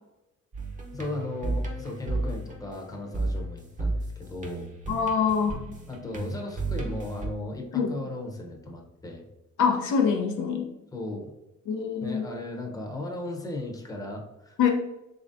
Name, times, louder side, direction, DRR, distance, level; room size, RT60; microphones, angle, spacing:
sound 1, 0.5-7.3, right 2 dB, 25° right, 0.7 m, -33 dB
voice 1, 0.9-4.7 5.9-9.2 10.9-11.3 12.0-14.6, left 2 dB, 10° left, 1 dB, 0.7 m, -36 dB
voice 2, 4.9-5.6 7.7-7.9 9.6-10.7 11.7-12.2 14.6-14.7, left 6 dB, 80° left, 3 dB, 0.7 m, -24 dB
3.8 x 3.1 x 2.5 m, 0.94 s
cardioid pair, 90°, 30 cm